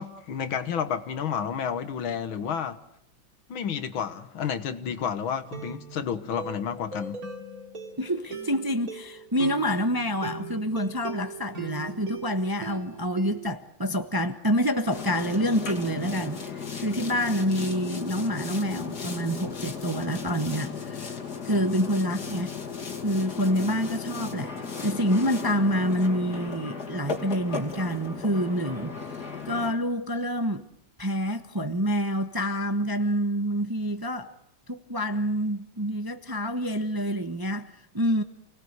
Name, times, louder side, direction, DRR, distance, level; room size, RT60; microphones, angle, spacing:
voice 1, 0.0-2.8 3.5-7.2, left 7 dB, 80° left, 2.1 m, -31 dB
sound 1, 4.8-4.9 5.5-13.5, right 4 dB, 45° right, 3.4 m, -40 dB
voice 2, 8.0-21.2 21.4-22.5 23.0-29.2 29.4-30.6 31.0-34.3 34.7-38.2, equal, 15° right, 0.8 m, -27 dB
Boat Water vehicle, 14.9-29.7, left 5 dB, 50° left, 2.9 m, -36 dB
29.0 x 19.5 x 8.1 m
omnidirectional pair, 2.2 m